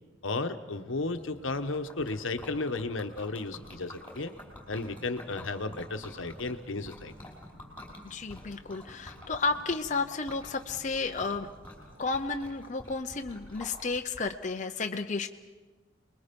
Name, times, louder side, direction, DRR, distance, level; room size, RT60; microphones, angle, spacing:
voice 1, 0.2-4.3 4.7-7.1, left 3 dB, 75° left, 8 dB, 1.1 m, -34 dB
sound 1, 0.6-12.7, equal, 60° right, 3.4 m, -58 dB
Liquid, 1.0-14.2, left 1 dB, 10° left, 4.9 m, -49 dB
voice 2, 8.1-11.5 12.0-15.3, left 4 dB, 40° left, 4 dB, 0.7 m, -32 dB
29.5 x 21.5 x 5.3 m, 1.3 s
head